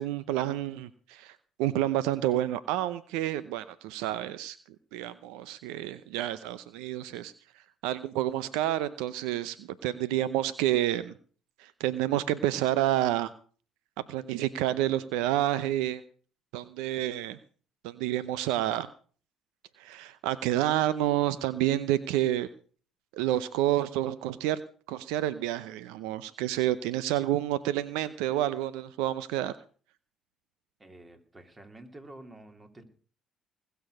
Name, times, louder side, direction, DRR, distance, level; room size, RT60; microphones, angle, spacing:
voice 1, 0.0-4.6 4.9-7.3 7.8-11.1 11.6-13.3 14.1-16.0 16.5-17.4 17.8-18.9 19.8-22.5 23.1-24.6 24.9-29.5, right 13 dB, 80° right, 16 dB, 0.6 m, -29 dB
voice 2, 30.8-32.8, right 1 dB, 25° right, 6 dB, 3.1 m, -49 dB
20.5 x 6.9 x 6.6 m, 0.43 s
hypercardioid pair, 60°, 0 cm